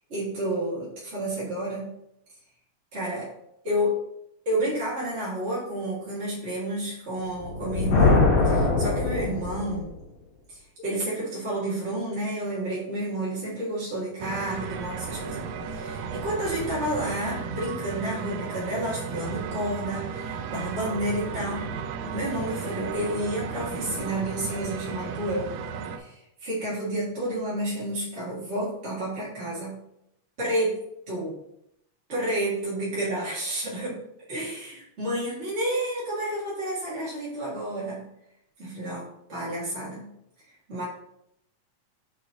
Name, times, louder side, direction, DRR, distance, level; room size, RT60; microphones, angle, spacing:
voice 1, 0.1-1.9 2.9-3.3 3.6-3.9 4.4-9.9 10.5-15.5 15.7-21.7 22.1-25.5 25.9-29.8 30.4-31.3 32.1-34.0 34.3-38.1 38.6-40.1 40.7-40.8, right 1 dB, 25° right, -8 dB, 1.7 m, -30 dB
Thunder, 7.3-10.0, left 3 dB, 65° left, 2.8 m, -22 dB
sound 1, 14.2-26.0, right 6 dB, 80° right, 2.0 m, -34 dB
6.8 x 6.2 x 3.8 m, 0.80 s
omnidirectional pair, 3.5 m